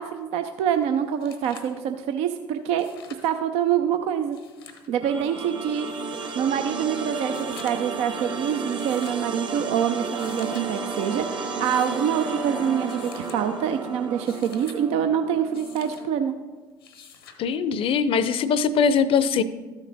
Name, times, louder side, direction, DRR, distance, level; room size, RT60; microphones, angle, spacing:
voice 1, 0.0-2.9 3.2-4.4 4.9-5.9 6.4-11.2 11.6-16.3, right 8 dB, 60° right, 8 dB, 0.5 m, -25 dB
sound 1, 0.7-0.8 1.1-1.8 2.7-3.4 4.2-4.9 5.9-6.4 7.2-8.0 8.8-9.3 10.0-10.7 11.5-12.1 12.9-13.4 14.0-14.8 15.5-16.0 16.8-17.4 18.8-18.9, left 7 dB, 85° left, 0.9 m, -48 dB
sound 2, 5.0-16.1, right 5 dB, 40° right, 1.4 m, -33 dB
Wind instrument woodwind instrument, 10.1-14.6, right 1 dB, ahead, 0.6 m, -40 dB
voice 2, 17.4-19.4, left 6 dB, 50° left, 15 dB, 0.6 m, -21 dB
13.0 x 5.9 x 4.0 m, 1.3 s
hypercardioid pair, 60°, 12 cm